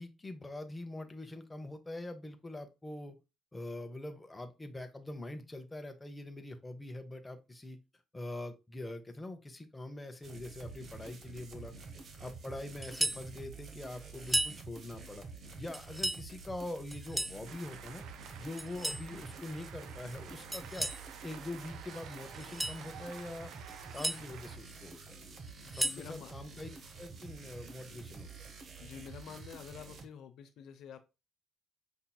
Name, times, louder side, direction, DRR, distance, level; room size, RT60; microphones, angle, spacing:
voice 1, 0.0-3.2 3.5-7.8 8.1-11.7 12.2-15.2 15.5-18.0 18.4-20.9 21.2-23.5 23.9-25.2 25.7-26.7 27.0-28.3, left 1 dB, 15° left, 6 dB, 0.7 m, -44 dB
sound 1, 10.2-30.1, right 4 dB, 50° right, 0.8 m, -49 dB
sound 2, 12.8-13.3 14.2-14.6 15.7-16.2 16.9-17.4 18.6-19.1 20.5-21.0 22.3-22.8 23.7-24.2 25.5-26.1, right 1 dB, 5° right, 0.3 m, -34 dB
Cheering / Applause, 17.5-24.6, right 8 dB, 80° right, 0.5 m, -51 dB
voice 2, 25.6-26.3 28.8-31.0, left 7 dB, 75° left, 7 dB, 0.5 m, -48 dB
5.4 x 2.8 x 2.2 m, 0.27 s
cardioid pair, 95°, 0 cm